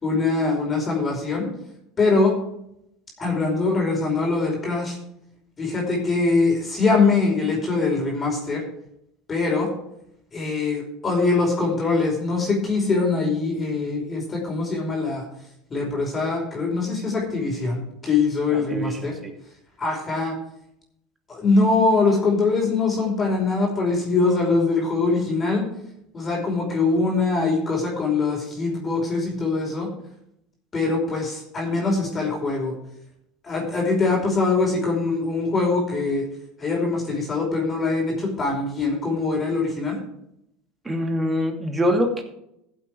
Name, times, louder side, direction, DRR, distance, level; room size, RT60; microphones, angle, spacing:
voice 1, 0.0-1.5 2.0-2.3 3.2-5.0 5.6-8.6 9.3-9.7 10.3-15.2 15.7-19.1 19.8-20.3 21.3-25.6 26.1-29.9 30.7-32.7 33.4-36.3 36.6-40.0, left 3 dB, 25° left, -1 dB, 5.1 m, -23 dB
voice 2, 18.5-19.3 40.8-42.2, equal, 15° right, 4 dB, 2.7 m, -24 dB
15.5 x 7.8 x 4.8 m, 0.79 s
hypercardioid pair, 75°, 0 cm